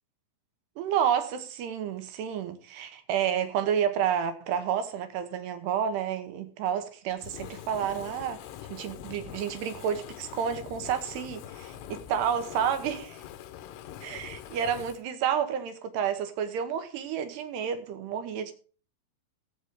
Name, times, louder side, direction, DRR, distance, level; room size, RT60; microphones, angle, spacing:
voice 1, 0.8-8.4 8.7-13.2 14.0-18.5, right 8 dB, 75° right, 2.7 m, -30 dB
Fire, 7.2-15.0, left 11 dB, 90° left, 3.6 m, -44 dB
17.0 x 8.1 x 3.7 m
omnidirectional pair, 5.6 m